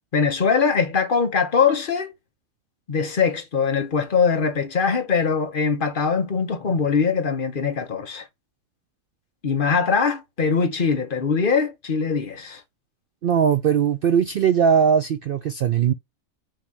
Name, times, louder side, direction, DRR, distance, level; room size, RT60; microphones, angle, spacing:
voice 1, 0.1-2.1 2.9-8.3 9.4-12.6, left 5 dB, 40° left, 1.0 m, -22 dB
voice 2, 13.2-15.9, right 7 dB, 80° right, 0.4 m, -19 dB
5.6 x 2.7 x 3.3 m
omnidirectional pair, 1.5 m